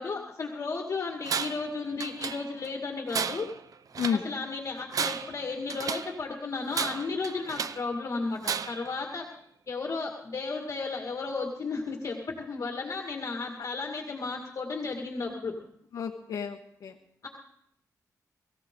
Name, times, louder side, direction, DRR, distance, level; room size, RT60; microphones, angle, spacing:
voice 1, 0.0-3.5 4.1-9.3 9.7-15.5 17.2-17.3, left 4 dB, 50° left, 1 dB, 2.1 m, -34 dB
Tools, 1.3-1.7 2.0-2.7 3.1-4.3 4.8-6.2 6.7-7.9 8.4-8.9, right 6 dB, 65° right, 0.7 m, -33 dB
voice 2, 15.9-16.9, left 7 dB, 70° left, 1 dB, 1.3 m, -31 dB
24.0 x 15.0 x 3.8 m, 0.73 s
cardioid pair, 90°, 7 cm